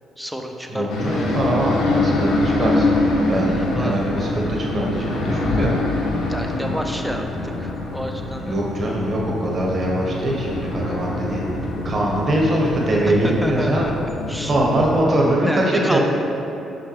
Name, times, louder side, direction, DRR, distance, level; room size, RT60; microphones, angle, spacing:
voice 1, 0.2-1.4 3.5-4.0 6.3-8.6 13.1-13.9 14.3-14.5 15.5-16.0, equal, ahead, 3 dB, 0.6 m, -30 dB
voice 2, 0.7-3.0 3.3-5.8 8.4-11.5 11.8-13.9 14.4-16.0, right 1 dB, 45° right, -3 dB, 1.4 m, -22 dB
sound 1, 0.9-15.0, left 2 dB, 90° left, 0.8 m, -24 dB
6.6 x 5.5 x 3.4 m, 2.9 s
cardioid pair, 90°, 0 cm